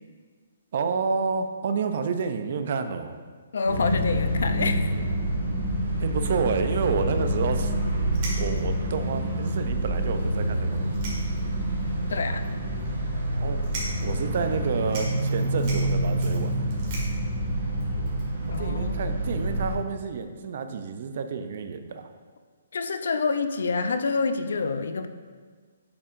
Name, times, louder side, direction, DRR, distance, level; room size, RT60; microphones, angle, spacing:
voice 1, 0.7-3.2 6.0-7.7 8.4-10.9 13.4-13.6 14.0-16.6 18.6-22.1, right 5 dB, 45° right, 8 dB, 0.4 m, -29 dB
voice 2, 3.5-5.0 12.1-12.5 18.5-19.0 22.7-25.1, left 4 dB, 70° left, 9 dB, 0.5 m, -27 dB
sound 1, 3.7-19.7, right 1 dB, 75° right, 1.4 m, -27 dB
sound 2, 8.1-8.8 9.5-9.6 9.8-9.9 10.7-11.6 12.0-12.1 12.8-13.1 13.6-14.1 14.5-14.6 14.9-18.6, right 2 dB, 30° right, 1.7 m, -39 dB
8.4 x 4.5 x 2.5 m, 1.5 s
hypercardioid pair, 165°, 0 cm